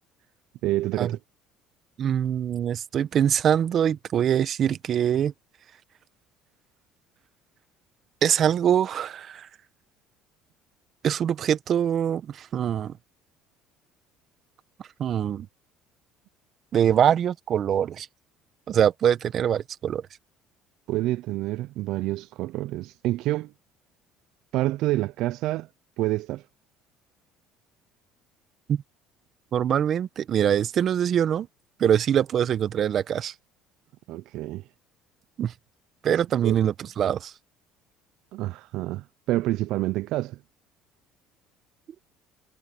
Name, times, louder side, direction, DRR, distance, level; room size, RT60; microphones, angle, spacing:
voice 1, 0.6-1.2 20.9-23.5 24.5-25.7 26.0-26.4 34.1-34.6 36.4-36.7 38.3-40.4, right 17 dB, 70° right, 0.4 m, -28 dB
voice 2, 2.0-5.3 8.2-9.5 11.0-12.9 15.0-15.5 16.7-18.1 18.7-20.0 28.7-28.8 29.5-31.5 31.8-33.3 35.4-35.5 36.0-37.3, right 9 dB, 50° right, 1.3 m, -23 dB
supercardioid pair, 90°, 0 cm